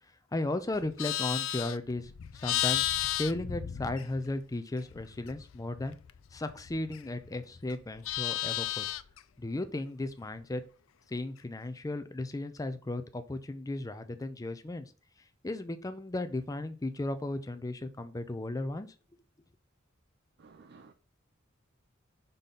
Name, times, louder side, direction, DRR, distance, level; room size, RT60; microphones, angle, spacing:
voice 1, 0.3-2.1 2.4-2.8 3.2-6.0 6.3-8.9 9.4-10.6 11.1-14.9 15.4-18.9, left 2 dB, 15° left, 0.5 m, -35 dB
Livestock farm animals working animals, 0.7-4.4 4.8-7.3 7.6-9.2, left 13 dB, 75° left, 0.4 m, -34 dB
voice 2, 20.4-20.9, right 4 dB, 55° right, 0.6 m, -54 dB
5.3 x 3.8 x 5.7 m
head